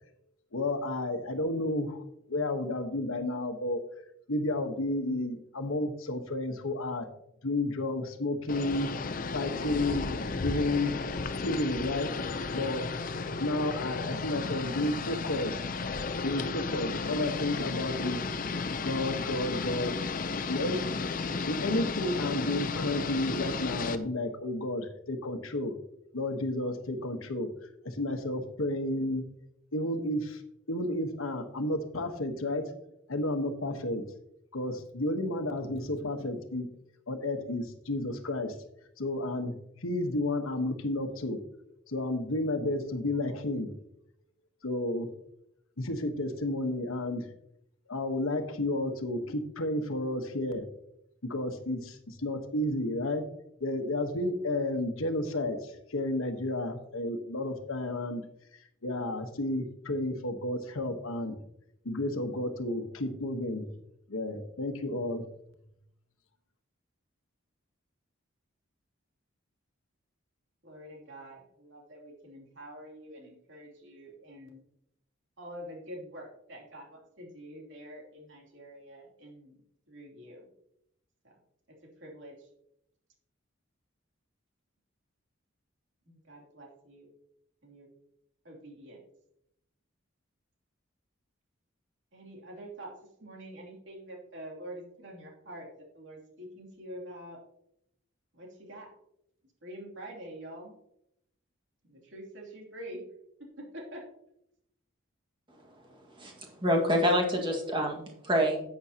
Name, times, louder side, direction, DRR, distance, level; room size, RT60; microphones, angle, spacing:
voice 1, 0.5-2.0 2.3-3.8 4.3-7.1 7.4-8.9 9.3-10.1 10.4-10.9 11.4-12.1 12.5-12.9 13.4-15.8 16.2-18.2 18.8-20.8 21.5-25.8 26.1-27.5 27.8-29.2 29.7-30.4 30.7-32.7 33.1-34.1 34.5-36.7 37.1-38.5 39.0-39.5 39.8-41.4 41.9-43.7 44.6-45.1 45.8-47.3 47.9-50.7 51.2-53.3 53.6-58.2 58.8-61.3 61.8-63.7 64.1-65.2, left 1 dB, 85° left, 6 dB, 1.2 m, -31 dB
sound 1, 8.5-24.0, left 4 dB, 40° left, 0.5 m, -34 dB
voice 2, 70.6-74.6 75.4-79.5 79.9-80.5 81.2-81.3 81.7-82.5 86.1-87.1 87.6-87.9 88.4-89.0 92.1-92.9 93.2-97.4 98.3-98.9 99.6-100.8 101.8-103.0 103.4-104.0, right 1 dB, 65° right, -1 dB, 2.9 m, -46 dB
voice 3, 106.6-108.6, equal, 25° right, 1 dB, 1.7 m, -26 dB
11.0 x 8.7 x 2.8 m, 0.78 s
head